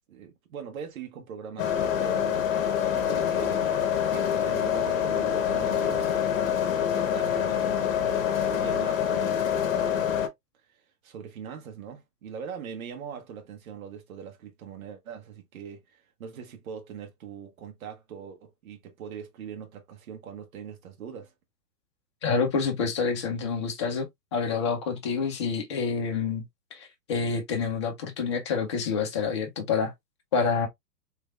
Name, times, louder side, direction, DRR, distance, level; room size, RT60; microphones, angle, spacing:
voice 1, 0.1-2.5 2.9-6.2 6.9-8.0 8.3-10.0 10.7-21.3, right 7 dB, 55° right, 1.3 m, -41 dB
sound 1, 1.6-10.3, left 9 dB, 50° left, 0.9 m, -26 dB
voice 2, 22.2-24.1 24.3-26.4 26.7-29.9 30.3-30.7, left 5 dB, 20° left, 0.4 m, -27 dB
3.3 x 3.2 x 2.3 m
hypercardioid pair, 120°, 49 cm